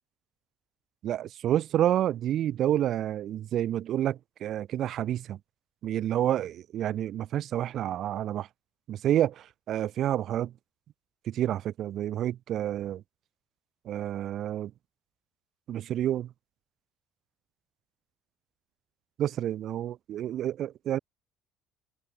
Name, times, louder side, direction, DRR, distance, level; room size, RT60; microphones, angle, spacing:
voice 1, 1.0-5.4 5.8-8.5 8.9-10.5 11.3-13.0 13.9-14.7 15.7-16.3 19.2-21.0, right 11 dB, 50° right, 0.6 m, -29 dB
cardioid pair, 130°, 0 cm